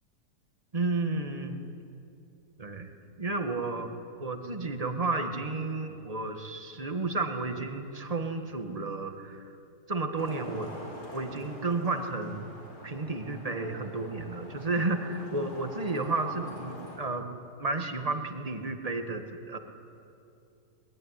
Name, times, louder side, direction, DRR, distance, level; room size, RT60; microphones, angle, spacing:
voice 1, 0.7-1.6 2.6-2.9 3.2-9.5 9.9-10.7 11.1-12.6 12.8-17.3 17.6-19.6, right 3 dB, 20° right, 5 dB, 1.7 m, -32 dB
Traffic noise roadway noise, 10.2-17.0, left 1 dB, 65° left, 5.8 m, -45 dB
22.0 x 20.5 x 9.8 m, 2.7 s
omnidirectional pair, 1.8 m